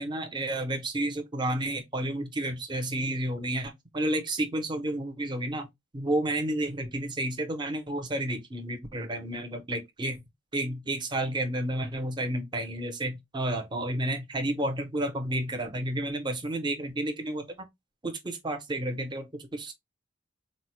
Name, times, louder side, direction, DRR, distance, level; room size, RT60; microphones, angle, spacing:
voice 1, 0.0-5.7 5.9-10.2 10.5-17.7 18.0-19.7, right 1 dB, 25° right, 0.6 m, -31 dB
3.8 x 2.1 x 3.0 m
head